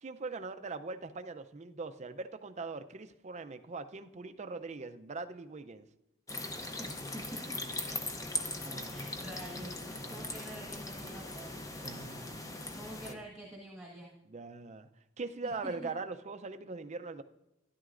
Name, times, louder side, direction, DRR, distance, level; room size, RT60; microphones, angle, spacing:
voice 1, 0.0-5.9 8.6-9.1 10.0-10.4 11.8-12.8 13.0-13.2 14.3-14.9 15.2-17.2, right 3 dB, 35° right, 9 dB, 0.5 m, -41 dB
sound 1, 6.3-13.1, left 2 dB, 15° left, 0.7 m, -40 dB
voice 2, 6.8-7.6 8.9-9.8 10.1-11.6 12.7-14.1 15.4-15.7, right 1 dB, ahead, -6 dB, 1.5 m, -47 dB
12.5 x 11.0 x 2.5 m, 0.92 s
head